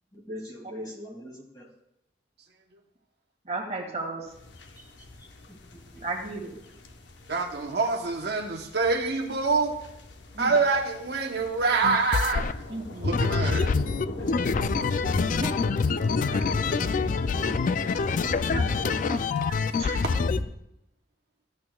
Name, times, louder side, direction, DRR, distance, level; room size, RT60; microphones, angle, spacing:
voice 1, 0.1-1.7 5.2-6.0 13.6-14.4, equal, 20° left, -1 dB, 2.0 m, -43 dB
voice 2, 3.5-4.2 6.0-6.6 10.3-10.6 12.7-13.2 15.4-15.5 16.3-16.4 18.2-20.1, right 2 dB, 40° right, 2 dB, 1.7 m, -35 dB
sound 1, 4.3-20.4, left 1 dB, 80° left, 0.8 m, -36 dB
voice 3, 7.3-9.7 10.4-12.5 13.0-13.7, right 4 dB, 60° right, 2 dB, 0.9 m, -26 dB
sound 2, 11.8-12.5 13.1-20.4, left 5 dB, 45° left, 0.3 m, -26 dB
13.5 x 8.4 x 2.3 m, 0.83 s
head